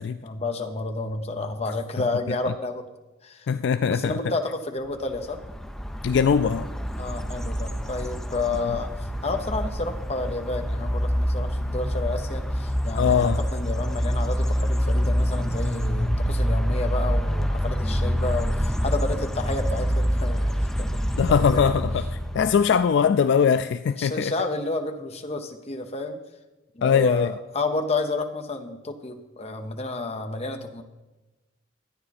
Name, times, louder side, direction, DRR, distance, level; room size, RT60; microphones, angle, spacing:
voice 1, 0.2-2.9 3.2-3.5 3.9-5.4 7.0-21.8 23.9-26.2 26.7-30.8, left 3 dB, 30° left, 6 dB, 0.8 m, -31 dB
voice 2, 3.5-4.2 6.0-6.7 13.0-13.4 21.2-22.0 22.3-24.3 26.8-27.3, left 6 dB, 60° left, 11 dB, 0.3 m, -21 dB
sound 1, 5.1-22.7, equal, 5° left, 0.5 m, -26 dB
12.5 x 9.5 x 4.1 m, 1.1 s
head